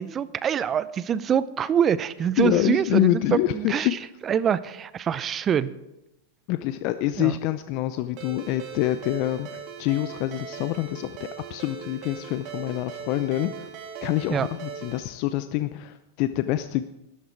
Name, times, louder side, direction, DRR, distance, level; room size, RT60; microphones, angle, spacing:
voice 1, 0.0-3.9 4.2-5.7 7.2-7.4 14.3-14.5, right 8 dB, 30° right, 17 dB, 0.6 m, -25 dB
voice 2, 2.4-3.9 6.5-13.7 14.0-16.8, left 15 dB, 50° left, 11 dB, 0.6 m, -26 dB
Ringtone, 8.2-15.0, right 7 dB, 50° right, 2.7 m, -39 dB
13.0 x 12.0 x 4.6 m, 0.91 s
hypercardioid pair, 100°, 0 cm